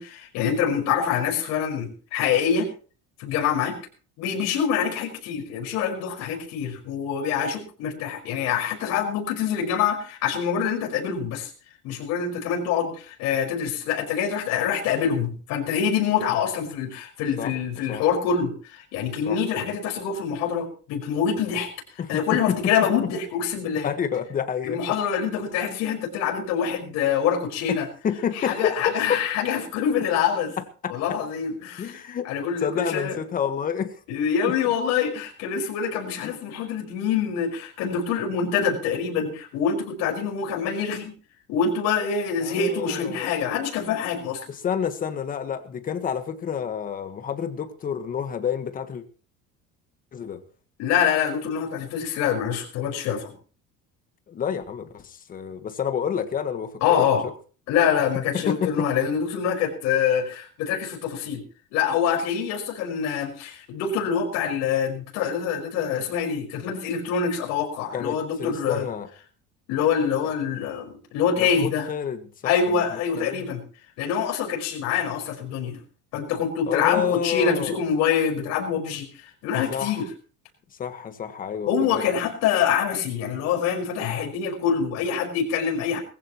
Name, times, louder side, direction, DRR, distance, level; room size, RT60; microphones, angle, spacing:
voice 1, 0.0-2.7 3.2-3.8 4.2-11.5 11.8-21.7 22.1-23.9 24.6-27.9 28.4-30.6 30.9-31.9 32.3-33.2 34.1-41.1 41.5-44.5 50.8-53.3 56.8-57.3 57.7-61.4 61.7-68.9 69.7-71.9 72.4-73.6 74.0-75.8 76.1-80.1 81.7-86.0, left 7 dB, 65° left, 2 dB, 5.2 m, -25 dB
voice 2, 22.0-22.6 23.8-24.8 27.7-27.8 28.0-28.9 30.8-30.9 31.8-32.3 32.6-34.0 34.4-34.5 42.4-43.3 44.5-49.0 50.1-50.4 54.3-57.0 58.3-58.9 67.9-69.1 71.4-72.8 73.1-73.4 76.7-77.8 79.7-80.0 80.8-82.0, left 8 dB, 30° left, 9 dB, 1.5 m, -29 dB
20.5 x 15.5 x 3.1 m, 0.39 s
cardioid pair, 160°, 29 cm